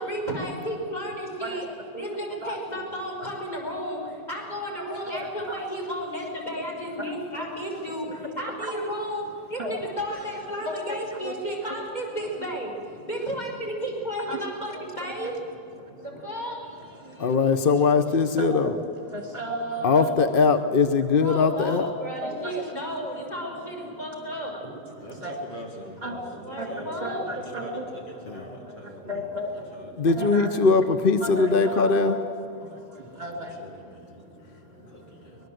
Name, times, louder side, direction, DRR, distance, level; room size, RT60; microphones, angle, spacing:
voice 1, 0.0-1.7 2.0-12.7 13.0-15.3 16.0-16.6 21.2-24.5 26.4-27.2, equal, 20° left, -1 dB, 6.0 m, -33 dB
voice 2, 10.6-11.3 11.7-11.8 14.3-14.4 14.7-15.3 18.4-18.8 19.1-20.5 22.2-22.6 25.2-25.3 26.0-26.2 26.6-27.9 28.3-28.5 29.1-29.5 30.1-30.7 31.2-32.2 33.2-33.5, equal, 30° right, 2 dB, 2.8 m, -34 dB
voice 3, 17.2-18.7 19.8-21.9 28.3-28.4 30.0-32.1, left 4 dB, 45° left, 10 dB, 0.7 m, -21 dB
voice 4, 25.0-27.0 27.2-29.2 29.5-30.1 33.1-35.4, equal, 75° left, -1 dB, 5.1 m, -44 dB
24.5 x 20.5 x 7.8 m, 2.7 s
omnidirectional pair, 1.9 m